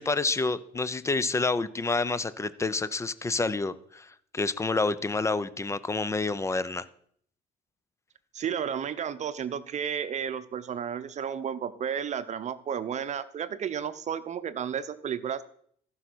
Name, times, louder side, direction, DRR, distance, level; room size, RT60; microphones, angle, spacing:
voice 1, 0.0-6.8, left 3 dB, 15° left, 16 dB, 0.6 m, -28 dB
voice 2, 8.3-15.4, right 8 dB, 45° right, 14 dB, 0.8 m, -32 dB
14.0 x 5.7 x 6.2 m, 0.62 s
cardioid pair, 110°, 17 cm